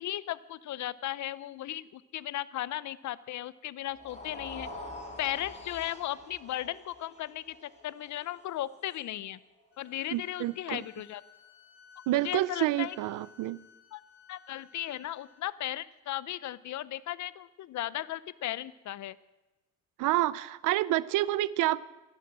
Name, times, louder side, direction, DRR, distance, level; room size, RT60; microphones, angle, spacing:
voice 1, 0.0-4.7 5.2-9.4 9.8-11.2 12.1-13.0 13.9-14.0 14.3-19.2, left 13 dB, 70° left, 18 dB, 0.7 m, -36 dB
sound 1, 3.9-10.1, left 1 dB, 20° left, 4.5 m, -47 dB
sound 2, 9.7-15.4, left 5 dB, 45° left, 4.0 m, -57 dB
voice 2, 10.1-10.8 12.1-13.6 20.0-21.8, right 16 dB, 85° right, 20 dB, 0.6 m, -28 dB
15.0 x 11.0 x 7.5 m, 1.0 s
cardioid pair, 90°, 30 cm